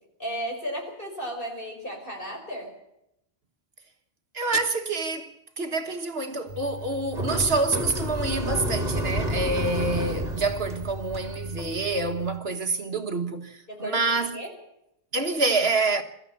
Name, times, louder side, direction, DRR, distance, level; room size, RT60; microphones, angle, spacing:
voice 1, 0.2-2.7 13.7-14.0 14.3-14.5, equal, 50° left, 5.6 m, -34 dB
voice 2, 4.3-14.4 15.1-16.0, right 3 dB, 60° right, 1.7 m, -27 dB
sound 1, 6.5-12.4, equal, 35° right, 3.2 m, -31 dB
23.5 x 14.0 x 8.5 m
omnidirectional pair, 1.2 m